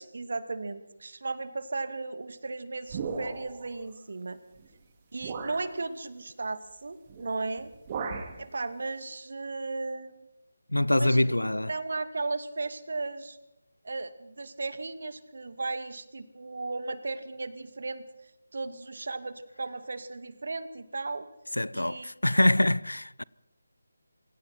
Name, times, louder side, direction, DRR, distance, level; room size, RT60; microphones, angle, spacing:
voice 1, 0.0-4.4 5.1-7.7 8.4-10.3 10.9-11.4 11.7-13.4 13.8-18.0 18.5-21.3 21.7-22.1, right 3 dB, 60° right, 2.3 m, -35 dB
sound 1, 2.9-3.7 4.6-4.7 5.2-5.7 7.1-7.3 7.6-8.4, right 5 dB, 30° right, 2.9 m, -36 dB
voice 2, 10.7-11.7 21.6-23.2, left 1 dB, 90° left, 0.7 m, -24 dB
27.0 x 24.5 x 4.4 m
figure-of-eight pair, 155°, 0 cm